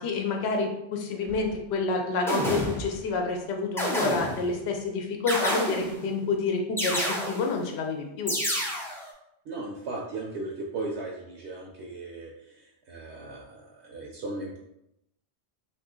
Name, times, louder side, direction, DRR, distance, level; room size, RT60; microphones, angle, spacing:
voice 1, 0.0-8.3, left 4 dB, 75° left, 3 dB, 0.8 m, -28 dB
sound 1, 1.3-1.5 2.3-3.0 3.8-4.5 5.3-6.1 6.8-7.6 8.3-9.1, equal, 5° left, 0.3 m, -29 dB
voice 2, 9.5-14.6, right 2 dB, 75° right, -1 dB, 0.8 m, -37 dB
2.7 x 2.4 x 3.6 m, 0.82 s
omnidirectional pair, 1.2 m